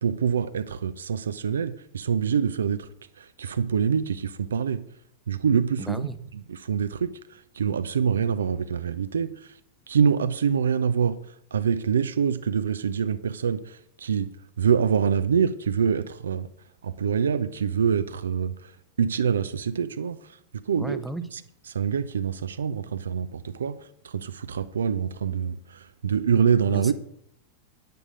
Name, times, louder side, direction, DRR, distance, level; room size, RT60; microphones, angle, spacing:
voice 1, 0.0-2.9 3.2-4.9 5.3-6.1 6.5-9.5 9.9-11.2 11.5-16.5 16.8-18.7 19.0-20.2 20.7-21.0 21.7-23.8 24.0-26.9, right 7 dB, 70° right, 0.6 m, -25 dB
voice 2, 5.8-6.2 20.8-21.2 26.7-26.9, right 1 dB, 5° right, 0.8 m, -34 dB
9.5 x 9.4 x 5.1 m
figure-of-eight pair, 90°, 0 cm